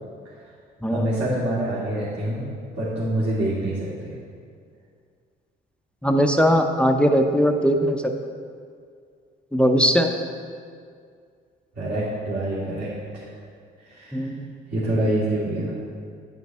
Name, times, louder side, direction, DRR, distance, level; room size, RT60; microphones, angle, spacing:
voice 1, 0.9-2.4 2.7-4.1 11.8-13.2 13.9-14.2 14.7-15.7, right 1 dB, 60° right, -11 dB, 2.5 m, -26 dB
voice 2, 6.0-8.1 9.5-10.1 14.1-14.5, equal, 5° left, 4 dB, 0.6 m, -20 dB
9.1 x 9.1 x 3.6 m, 2.2 s
cardioid pair, 90°, 20 cm